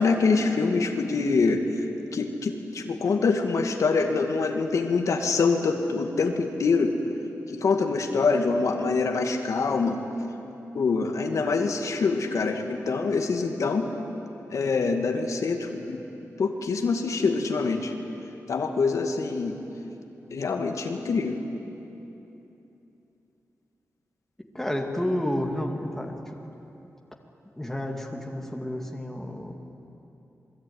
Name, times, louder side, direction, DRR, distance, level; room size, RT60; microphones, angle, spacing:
voice 1, 0.0-1.6 2.1-7.0 7.5-10.0 10.7-13.9 14.5-16.0 16.4-18.0 18.5-19.6 20.3-21.4, left 4 dB, 70° left, 4 dB, 2.1 m, -25 dB
voice 2, 24.5-26.4 27.6-29.5, left 1 dB, 5° left, 2 dB, 2.3 m, -30 dB
27.5 x 22.0 x 9.5 m, 3.0 s
wide cardioid pair, 140°, 6 cm